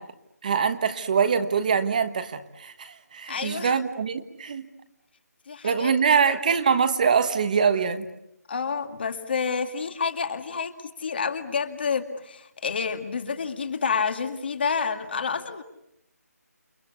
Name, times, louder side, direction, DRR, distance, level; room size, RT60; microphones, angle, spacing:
voice 1, 0.4-4.7 5.6-8.0, right 6 dB, 30° right, 9 dB, 1.3 m, -23 dB
voice 2, 3.3-3.8 5.5-5.9 6.2-6.4 8.5-10.7 11.0-15.6, left 5 dB, 40° left, 7 dB, 2.2 m, -29 dB
29.5 x 24.0 x 8.4 m, 0.79 s
figure-of-eight pair, 170°, 9 cm